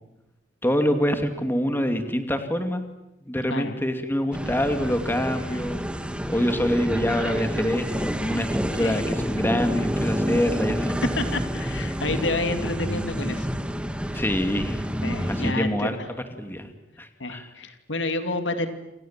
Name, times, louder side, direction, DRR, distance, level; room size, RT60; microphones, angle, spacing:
voice 1, 0.6-2.9 3.3-5.8 6.3-11.0 14.1-14.8 15.3-16.7 17.0-17.5, equal, 10° left, 7 dB, 2.5 m, -25 dB
sound 1, 4.3-15.5, equal, 5° right, 1.7 m, -28 dB
voice 2, 11.2-13.5 15.0-16.0 17.2-18.7, left 2 dB, 75° left, 8 dB, 2.6 m, -29 dB
29.0 x 27.5 x 7.5 m, 0.93 s
head